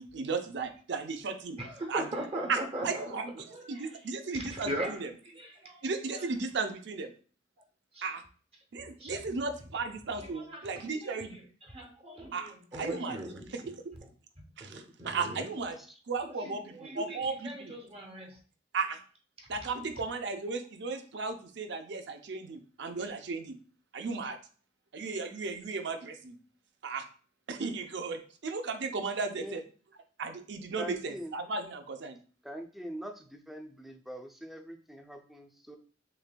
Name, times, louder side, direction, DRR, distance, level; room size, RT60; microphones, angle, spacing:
voice 1, 0.0-1.6 1.9-2.1 2.5-5.1 5.8-7.1 8.0-8.2 8.7-11.4 12.3-13.2 13.5-13.7 14.6-15.8 16.1-17.7 18.7-19.0 19.5-23.5 23.9-24.4 24.9-26.4 26.8-27.0 27.5-29.6 30.2-32.2, right 4 dB, 65° right, 7 dB, 0.5 m, -35 dB
voice 2, 1.6-3.1 3.5-3.9 4.3-5.0 5.3-5.8 8.0-8.1 9.0-9.2 10.3-11.2 11.7-13.5 14.7-15.4 16.4-17.2 17.4-18.3, right 1 dB, 30° right, 3 dB, 0.7 m, -39 dB
voice 3, 30.8-31.3 32.4-35.8, equal, ahead, 4 dB, 0.4 m, -43 dB
6.4 x 2.5 x 2.2 m, 0.40 s
head